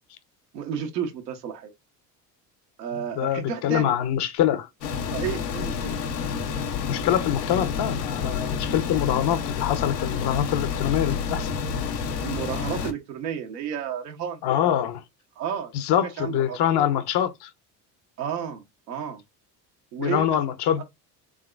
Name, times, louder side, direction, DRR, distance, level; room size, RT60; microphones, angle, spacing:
voice 1, 0.5-1.7 2.8-4.0 5.1-6.0 12.2-14.4 15.4-15.7 16.0-16.6 18.2-19.2 19.9-20.4 20.8-20.9, right 8 dB, 85° right, 1.3 m, -32 dB
voice 2, 3.2-4.7 6.9-11.5 14.4-15.0 15.7-17.5 20.0-20.8, left 10 dB, 55° left, 0.9 m, -24 dB
sound 1, 4.8-12.9, left 6 dB, 85° left, 1.1 m, -29 dB
3.8 x 3.6 x 2.4 m
hypercardioid pair, 65°, 48 cm